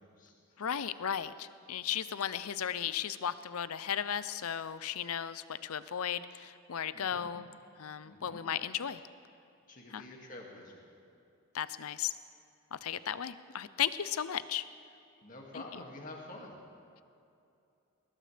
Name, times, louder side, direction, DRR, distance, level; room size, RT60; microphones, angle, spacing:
voice 1, 0.0-0.6 6.9-7.3 8.0-8.4 9.7-10.8 15.2-16.6, left 2 dB, 35° left, -1 dB, 2.2 m, -48 dB
voice 2, 0.6-7.5 7.8-9.0 9.9-10.0 11.5-12.1 12.7-14.6 15.5-15.6, left 9 dB, 80° left, 14 dB, 0.6 m, -35 dB
20.0 x 19.5 x 3.4 m, 2.6 s
head